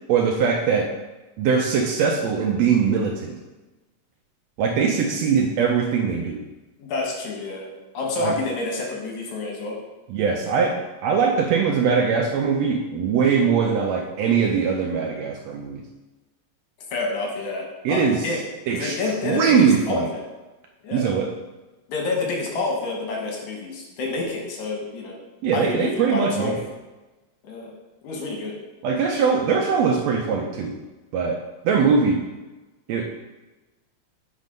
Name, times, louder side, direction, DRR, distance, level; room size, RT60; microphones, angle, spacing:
voice 1, 0.1-0.9 1.4-3.3 4.6-6.4 8.2-8.3 10.1-15.8 17.8-18.3 18.7-20.1 20.9-21.3 25.4-26.6 28.8-30.8 31.1-32.2 32.9-33.2, right 6 dB, 75° right, 1 dB, 1.7 m, -21 dB
voice 2, 6.8-7.7 7.9-9.8 16.9-18.4 18.7-20.2 20.8-21.1 21.9-25.2 25.5-26.5 27.4-27.7 28.0-28.5, left 3 dB, 80° left, -1 dB, 2.7 m, -28 dB
8.4 x 4.1 x 5.2 m, 1.1 s
omnidirectional pair, 3.3 m